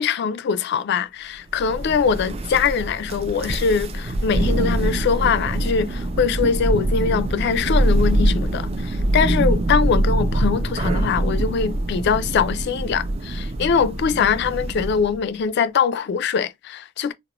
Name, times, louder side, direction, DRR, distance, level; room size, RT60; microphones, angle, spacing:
voice 1, 0.0-17.1, left 6 dB, 60° left, 0.3 m, -22 dB
Thunder, 1.5-15.2, right 1 dB, 30° right, 0.3 m, -23 dB
sound 1, 3.8-12.0, equal, 50° right, 0.7 m, -41 dB
2.4 x 2.0 x 2.9 m
head